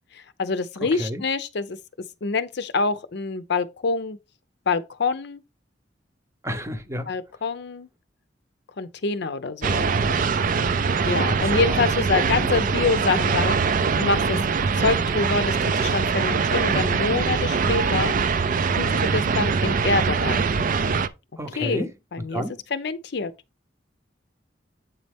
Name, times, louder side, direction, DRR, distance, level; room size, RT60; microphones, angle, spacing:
voice 1, 0.1-1.8 2.2-4.2 4.7-5.4 7.1-7.9 8.8-10.2 11.0-13.6 14.0-14.4 14.8-18.1 18.7-20.5 21.6-22.4 22.7-23.3, left 4 dB, 65° left, 0.6 m, -26 dB
voice 2, 6.4-7.1 11.2-11.8 21.4-21.9 22.3-22.5, equal, 15° right, 0.7 m, -30 dB
sound 1, 9.6-21.1, right 5 dB, 45° right, 0.4 m, -23 dB
8.2 x 4.1 x 3.5 m
head